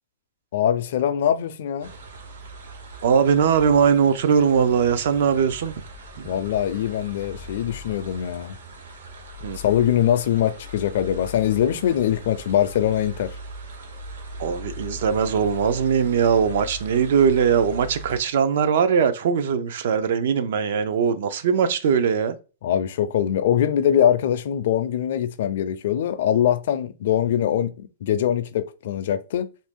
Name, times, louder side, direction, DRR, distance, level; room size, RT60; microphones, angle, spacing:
voice 1, 0.5-1.9 6.2-8.5 9.6-13.3 22.6-29.5, left 10 dB, 55° left, 0.4 m, -22 dB
sound 1, 1.8-18.2, equal, 85° right, 0.9 m, -39 dB
voice 2, 3.0-5.7 6.2-6.3 9.4-9.6 14.4-22.4, right 7 dB, 60° right, 0.4 m, -20 dB
2.8 x 2.6 x 3.6 m
hypercardioid pair, 165°, 0 cm